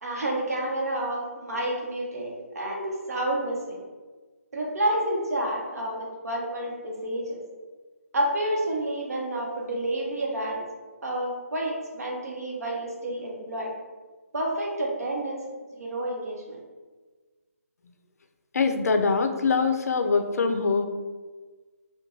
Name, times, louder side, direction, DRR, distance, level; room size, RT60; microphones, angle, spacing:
voice 1, 0.0-3.8 4.5-7.4 8.1-10.6 11.0-13.7 14.3-15.4 15.7-16.6, right 1 dB, 75° right, -2 dB, 0.8 m, -29 dB
voice 2, 18.5-20.8, left 4 dB, 85° left, 6 dB, 0.3 m, -23 dB
2.8 x 2.2 x 2.6 m, 1.3 s
hypercardioid pair, 170°, 8 cm